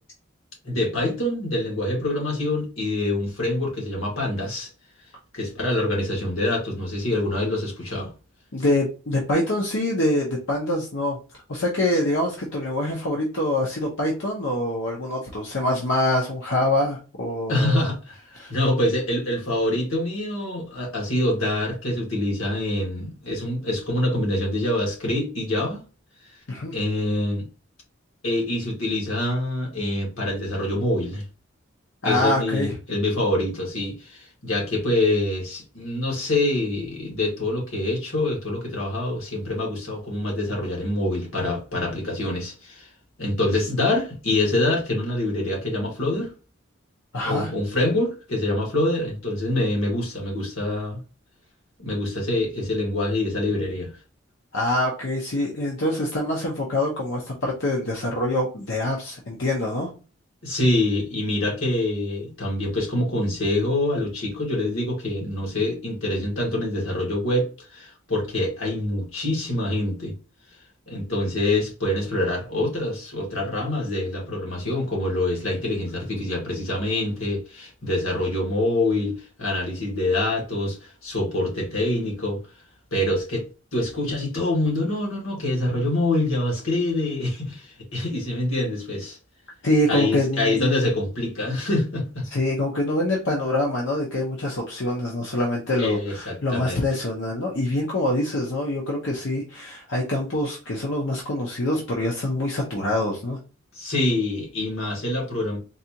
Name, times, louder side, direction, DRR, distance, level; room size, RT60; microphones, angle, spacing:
voice 1, 0.6-4.7 5.3-8.1 11.9-12.0 17.5-18.2 18.5-25.8 26.7-27.5 28.2-31.2 32.0-42.9 43.2-46.3 47.2-51.0 51.8-53.9 60.4-70.1 70.9-82.4 82.9-83.5 83.7-89.2 89.9-92.2 95.8-96.8 103.7-105.6, left 1 dB, 85° left, 1.6 m, -25 dB
voice 2, 8.5-11.2 11.5-17.8 18.3-18.5 26.5-26.7 32.0-32.7 47.1-47.5 54.5-59.9 89.6-90.8 92.3-103.4, left 1 dB, 65° left, 0.8 m, -25 dB
4.0 x 2.4 x 2.8 m
head